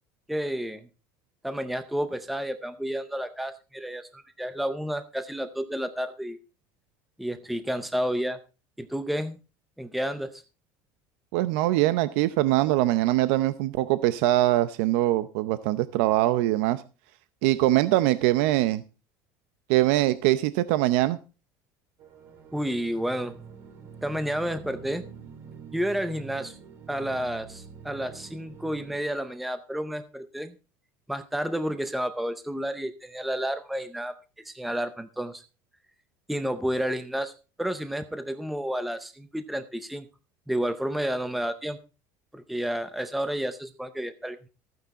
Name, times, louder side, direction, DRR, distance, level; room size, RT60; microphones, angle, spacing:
voice 1, 0.3-0.9 1.4-6.4 7.2-8.4 8.8-9.4 9.8-10.4 22.5-23.4 24.0-25.0 25.7-26.5 26.9-30.5 31.1-34.2 34.4-35.4 36.3-37.3 37.6-40.1 40.5-41.8 42.3-44.5, equal, ahead, 10 dB, 0.5 m, -31 dB
voice 2, 11.3-16.8 17.4-18.8 19.7-21.2, right 16 dB, 70° right, 14 dB, 0.7 m, -23 dB
sound 1, 22.0-29.0, right 7 dB, 35° right, 2.0 m, -46 dB
14.5 x 9.4 x 4.1 m, 0.32 s
cardioid pair, 180°, 7 cm